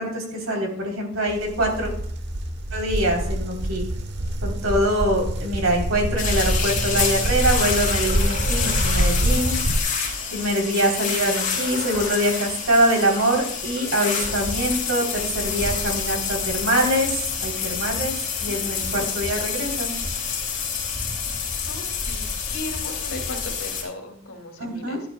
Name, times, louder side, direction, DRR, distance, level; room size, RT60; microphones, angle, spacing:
voice 1, 0.0-1.9 2.7-3.9 4.4-9.5 10.3-19.9 24.6-25.0, right 1 dB, 75° right, 1 dB, 3.3 m, -24 dB
sound 1, 1.3-9.8, right 1 dB, 55° right, 1.0 m, -25 dB
sound 2, 6.2-23.8, left 6 dB, 40° left, 3.8 m, -28 dB
voice 2, 18.5-19.2 21.5-25.0, left 2 dB, 85° left, 3 dB, 2.3 m, -37 dB
13.5 x 11.0 x 2.2 m, 0.68 s
head